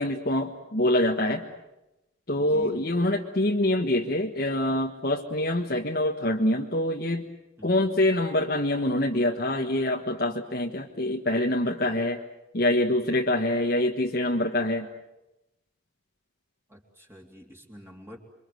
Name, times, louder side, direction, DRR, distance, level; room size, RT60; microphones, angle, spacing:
voice 1, 0.0-1.4 2.3-7.3 7.6-12.2 12.5-14.9, left 1 dB, 50° left, 1 dB, 1.5 m, -25 dB
voice 2, 2.4-2.8 7.6-7.7 16.7-18.2, equal, 15° right, -1 dB, 3.4 m, -46 dB
27.5 x 24.5 x 7.9 m, 0.95 s
head